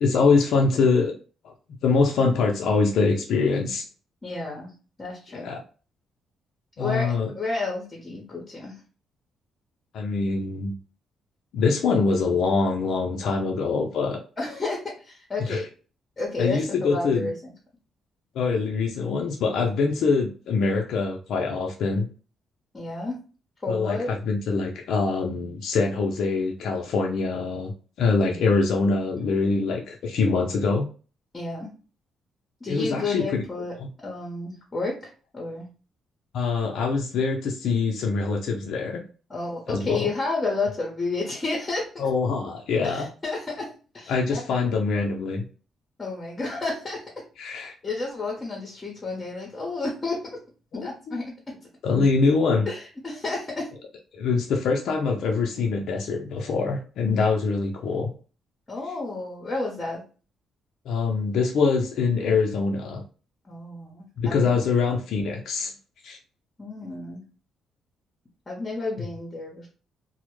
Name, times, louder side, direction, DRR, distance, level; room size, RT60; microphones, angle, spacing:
voice 1, 0.0-1.1 1.4-1.5 1.8-3.9 5.3-5.6 6.8-7.3 9.9-10.7 11.5-14.2 15.4-15.6 16.4-17.3 18.3-22.1 23.7-30.9 32.7-33.4 33.8-33.9 36.3-39.0 39.7-40.1 42.0-43.1 44.1-45.5 47.4-47.7 50.7-51.2 51.8-52.7 54.1-58.1 60.9-63.0 64.2-65.7 66.0-66.2 69.0-69.1, left 4 dB, 75° left, 1 dB, 0.4 m, -24 dB
voice 2, 4.2-4.7 5.0-5.5 6.8-8.8 14.4-15.6 16.2-17.3 22.7-23.2 23.6-24.1 28.2-28.4 31.3-31.7 32.6-33.7 34.0-35.7 39.3-41.9 42.8-44.4 46.0-47.0 47.5-50.4 50.7-51.6 52.7-53.7 58.7-60.0 63.5-64.7 66.6-67.2 68.5-69.7, left 3 dB, 25° left, -1 dB, 0.7 m, -31 dB
2.1 x 2.0 x 3.0 m, 0.37 s
cardioid pair, 90°, 0 cm